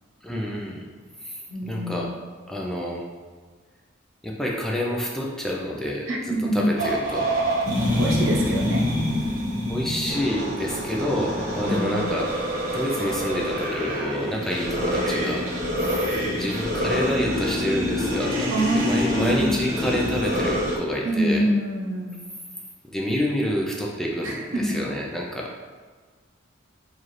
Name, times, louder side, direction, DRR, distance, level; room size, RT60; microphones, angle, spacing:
voice 1, 0.2-0.9 1.2-2.1 2.5-3.1 4.2-6.1 6.5-7.3 9.7-12.3 12.7-15.5 15.9-16.0 16.3-21.4 22.9-24.4 24.6-25.6, equal, ahead, -2 dB, 0.3 m, -28 dB
voice 2, 1.5-2.1 6.1-6.7 8.0-8.8 11.6-12.1 18.5-19.5 21.0-22.2 24.2-24.8, right 1 dB, 80° right, -2 dB, 0.7 m, -25 dB
sound 1, 6.8-20.8, equal, 40° right, 1.1 m, -26 dB
4.1 x 2.4 x 3.1 m, 1.5 s
head